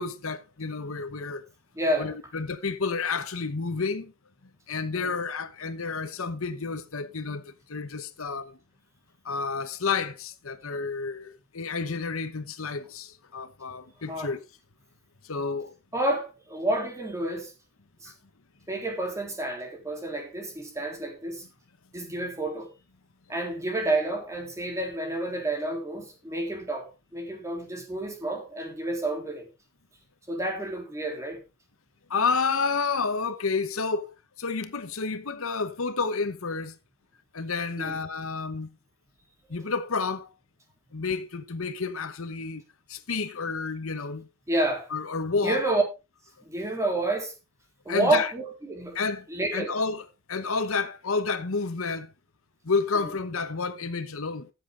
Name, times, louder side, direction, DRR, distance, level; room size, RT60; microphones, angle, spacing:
voice 1, 0.0-1.4 2.0-4.1 4.7-8.6 9.2-14.4 15.2-15.7 32.1-34.1 34.4-36.7 37.3-38.7 39.5-40.3 40.9-42.6 42.9-44.3 44.9-45.6 47.9-48.3 48.9-49.2 49.5-52.1 52.6-54.5, left 4 dB, 70° left, 1.0 m, -30 dB
voice 2, 1.7-2.1 4.9-5.1 14.1-14.3 15.9-17.5 18.0-18.1 18.7-21.5 21.9-22.7 23.3-29.5 30.3-31.4 37.8-38.0 44.5-44.9 45.4-45.8 46.5-47.3 47.9-49.0 49.3-49.8 52.9-53.1, right 2 dB, 15° right, 3.5 m, -29 dB
14.5 x 7.6 x 3.8 m
head